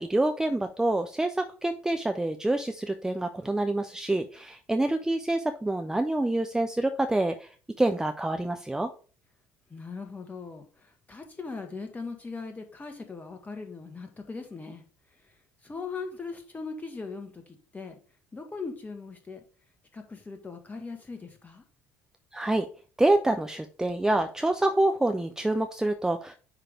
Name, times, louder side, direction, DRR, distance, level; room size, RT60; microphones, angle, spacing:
voice 1, 0.0-7.5 7.8-8.9 22.3-22.7 23.0-26.3, right 2 dB, 5° right, 6 dB, 0.6 m, -27 dB
voice 2, 9.7-14.8 15.1-15.3 15.6-18.0 18.3-19.4 19.9-21.6, left 4 dB, 20° left, 5 dB, 1.8 m, -40 dB
9.9 x 3.4 x 3.6 m, 0.38 s
figure-of-eight pair, 55°, 7 cm